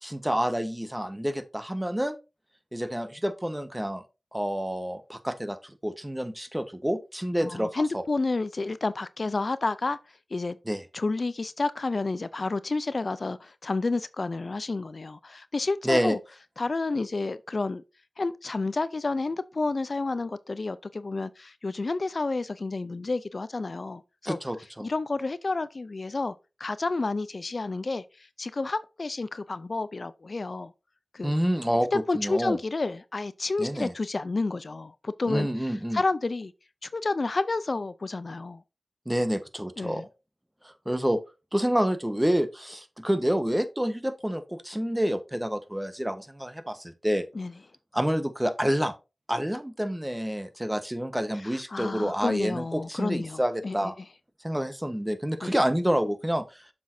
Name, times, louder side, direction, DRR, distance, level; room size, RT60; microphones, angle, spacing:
voice 1, 0.0-2.2 2.7-4.0 4.3-8.0 10.7-10.8 15.8-16.2 24.2-24.9 31.2-32.6 33.6-33.9 35.3-36.0 39.1-40.0 40.6-41.2 41.5-47.2 47.9-48.9 49.3-53.9 54.4-56.6, equal, 10° right, 1.2 m, -28 dB
voice 2, 7.4-10.0 10.3-10.6 10.9-16.2 16.6-17.8 18.2-24.4 24.8-30.7 31.1-31.3 31.9-36.5 36.8-38.6 39.8-40.1 47.3-47.5 51.3-53.9 55.4-55.5, left 3 dB, 60° left, 0.4 m, -30 dB
7.2 x 6.1 x 2.7 m
cardioid pair, 45°, 0 cm